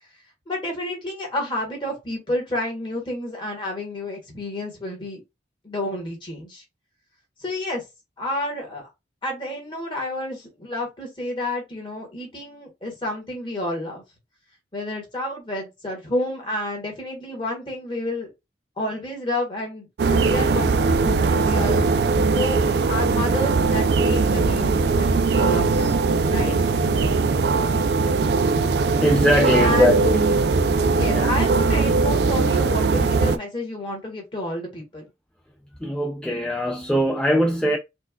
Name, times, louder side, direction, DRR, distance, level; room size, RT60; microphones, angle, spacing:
voice 1, 0.5-5.2 5.6-6.6 7.4-7.8 8.2-8.9 9.2-14.0 14.7-18.3 18.8-21.8 22.3-25.1 25.3-25.9 26.3-26.8 29.6-29.9 30.8-35.0, left 1 dB, 30° left, 1.4 m, -30 dB
sound 1, 20.0-33.4, right 4 dB, 65° right, 0.4 m, -20 dB
voice 2, 29.0-30.3 31.1-31.3 35.8-37.8, equal, 5° left, 0.3 m, -21 dB
4.3 x 2.3 x 2.3 m
head